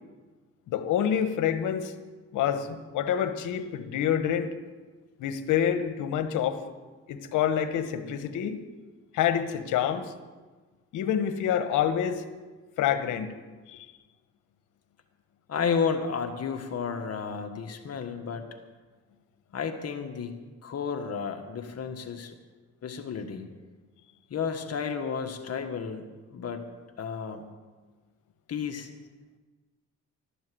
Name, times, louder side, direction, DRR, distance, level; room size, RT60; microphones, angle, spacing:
voice 1, 0.7-1.9 2.3-4.5 5.2-6.6 7.1-8.6 9.1-10.1 10.9-12.2 12.8-13.3 13.7-13.9, left 9 dB, 90° left, 9 dB, 1.3 m, -27 dB
voice 2, 15.5-18.5 19.5-20.4 20.6-22.3 22.8-23.5 24.3-26.7 27.0-27.5 28.5-28.9, left 6 dB, 55° left, 6 dB, 1.7 m, -32 dB
13.0 x 12.0 x 7.8 m, 1.3 s
cardioid pair, 90°, 30 cm